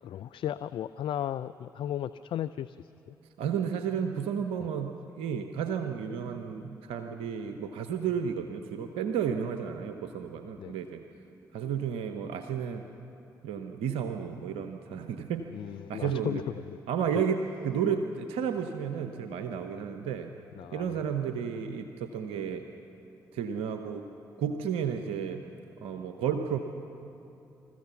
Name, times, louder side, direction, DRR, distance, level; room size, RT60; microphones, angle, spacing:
voice 1, 0.0-3.2 10.6-10.8 15.5-16.8 20.5-21.1, left 11 dB, 65° left, 14 dB, 0.4 m, -35 dB
voice 2, 3.4-11.0 11.5-12.8 13.4-15.5 15.9-16.4 16.9-20.3 20.7-22.7 23.3-24.0 24.4-25.4 25.8-26.6, right 7 dB, 80° right, 7 dB, 0.8 m, -32 dB
26.5 x 14.5 x 7.1 m, 2.8 s
hypercardioid pair, 45°, 10 cm